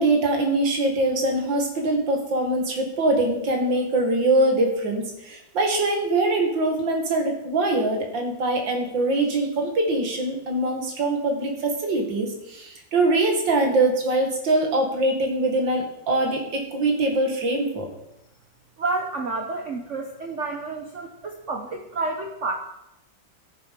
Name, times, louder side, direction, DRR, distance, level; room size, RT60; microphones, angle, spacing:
voice 1, 0.0-17.9, right 2 dB, 75° right, 3 dB, 2.6 m, -23 dB
voice 2, 18.8-22.5, right 3 dB, 45° right, 2 dB, 1.2 m, -29 dB
13.0 x 7.0 x 6.0 m, 0.86 s
omnidirectional pair, 2.0 m